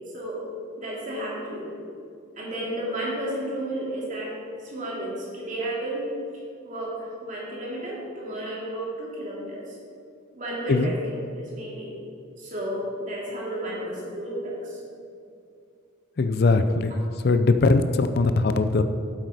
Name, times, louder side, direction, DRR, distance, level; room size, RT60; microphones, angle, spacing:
voice 1, 0.8-1.7 2.4-4.3 4.6-6.1 6.6-9.8 10.3-11.9 12.4-14.8, right 1 dB, 35° right, -5 dB, 2.6 m, -32 dB
voice 2, 16.2-16.9 17.2-18.8, left 3 dB, 50° left, 10 dB, 0.4 m, -20 dB
8.2 x 8.1 x 4.9 m, 2.4 s
head